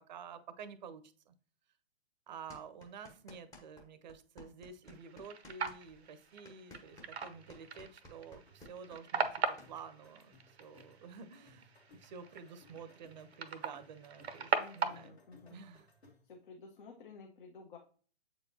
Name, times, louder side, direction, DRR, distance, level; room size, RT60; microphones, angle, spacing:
voice 1, 0.1-1.3 2.3-11.7 12.0-15.2 15.5-15.9, right 6 dB, 45° right, 12 dB, 0.7 m, -50 dB
sound 1, 2.5-3.8 4.1-9.7, left 2 dB, 10° left, 0.9 m, -55 dB
sound 2, 4.8-15.1, right 5 dB, 80° right, 0.8 m, -40 dB
sound 3, 6.9-16.4, left 1 dB, 85° left, 2.2 m, -64 dB
voice 2, 14.5-15.6 16.2-17.8, left 4 dB, 50° left, 0 dB, 1.1 m, -53 dB
7.6 x 4.5 x 2.7 m, 0.42 s
figure-of-eight pair, 125°, 32 cm